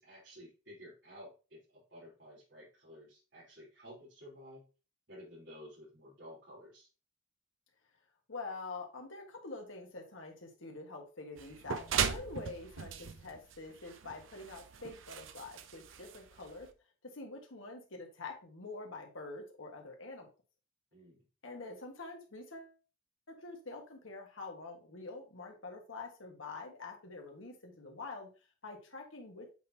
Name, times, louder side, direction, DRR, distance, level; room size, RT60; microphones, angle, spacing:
voice 1, 0.0-4.6 5.1-6.9 20.9-21.2, equal, 65° right, -9 dB, 3.6 m, -53 dB
voice 2, 8.3-16.7 17.0-20.3 21.4-22.8 23.3-28.3 28.6-29.5, left 3 dB, 90° left, 2 dB, 1.7 m, -46 dB
sound 1, 11.4-16.7, right 7 dB, 85° right, 0.6 m, -38 dB
7.9 x 4.4 x 2.8 m, 0.32 s
head